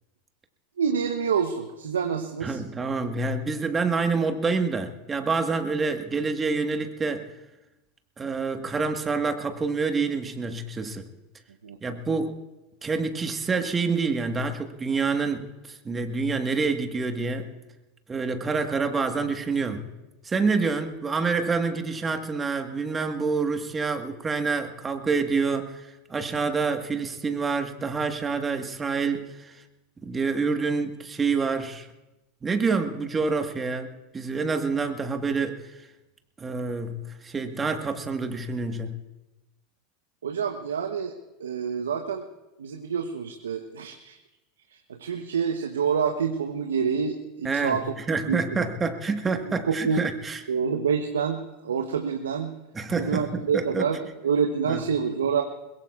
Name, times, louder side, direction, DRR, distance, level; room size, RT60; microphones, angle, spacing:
voice 1, 0.8-2.6 11.6-11.8 40.2-41.1 41.4-42.2 42.6-44.2 44.7-47.9 48.3-48.4 49.7-50.0 50.5-52.5 53.0-55.4, right 6 dB, 80° right, 6 dB, 0.9 m, -27 dB
voice 2, 2.4-7.3 8.2-11.1 11.8-12.3 12.8-17.5 18.1-19.9 20.2-29.6 30.0-31.9 32.4-35.8 36.4-39.0 47.4-47.8 48.1-50.4 52.7-53.9 54.7-54.8, right 4 dB, 20° right, 6 dB, 1.5 m, -27 dB
22.0 x 21.5 x 2.4 m, 1.0 s
hypercardioid pair, 90°, 0 cm